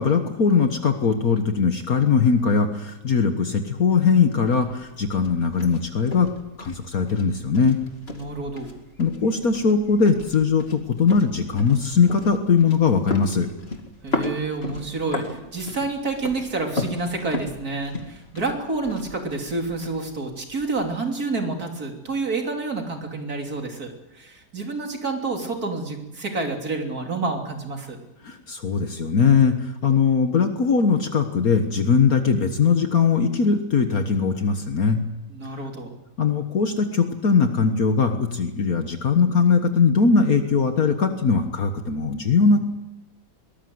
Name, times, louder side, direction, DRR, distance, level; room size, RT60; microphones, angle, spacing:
voice 1, 0.0-6.3 6.6-7.8 9.0-13.5 28.2-35.0 36.2-42.6, left 5 dB, 60° left, 6 dB, 1.8 m, -20 dB
sound 1, 3.9-20.9, left 2 dB, 35° left, 2.5 m, -36 dB
voice 2, 8.1-8.7 14.0-28.0 35.3-36.0, right 3 dB, 60° right, 3 dB, 3.6 m, -29 dB
23.0 x 19.0 x 7.9 m, 0.92 s
omnidirectional pair, 1.8 m